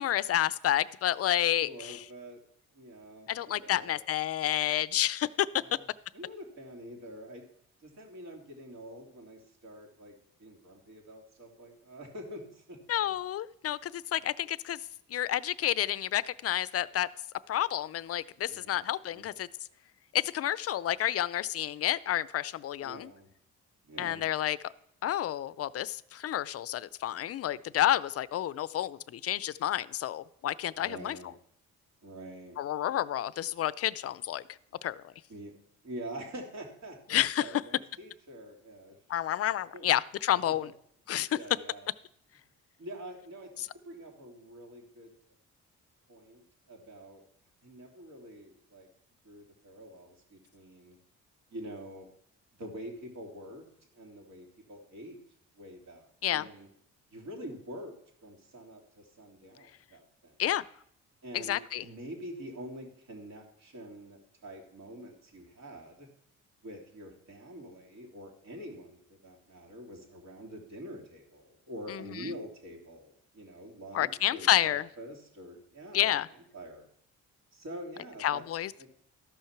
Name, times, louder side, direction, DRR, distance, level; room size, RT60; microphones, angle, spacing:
voice 1, 0.0-2.0 3.3-5.5 12.9-14.8 15.1-17.1 17.5-19.5 20.1-23.1 24.0-24.6 25.0-31.2 32.6-34.4 34.8-35.1 37.1-37.5 39.1-40.7 41.1-41.3 43.6-43.7 56.2-56.5 60.4-60.6 61.3-61.8 71.9-72.3 73.9-74.9 75.9-76.3 78.2-78.7, left 12 dB, 50° left, 18 dB, 0.5 m, -30 dB
voice 2, 1.6-2.4 2.7-4.0 5.6-5.9 6.1-7.4 7.8-13.2 14.2-14.3 18.5-19.3 22.8-23.3 23.9-24.2 30.7-31.3 32.0-32.6 35.3-35.5 35.8-37.0 37.4-39.0 39.4-39.9 40.4-40.7 41.3-41.9 42.8-45.1 46.1-47.2 47.6-48.9 49.2-51.0 51.5-52.1 52.6-53.7 53.9-55.2 55.5-56.7 57.1-60.3 61.2-66.1 66.6-76.9 77.5-78.4 78.8-78.9, equal, 60° right, 1 dB, 3.1 m, -46 dB
13.5 x 5.6 x 6.0 m, 0.69 s
cardioid pair, 90°, 30 cm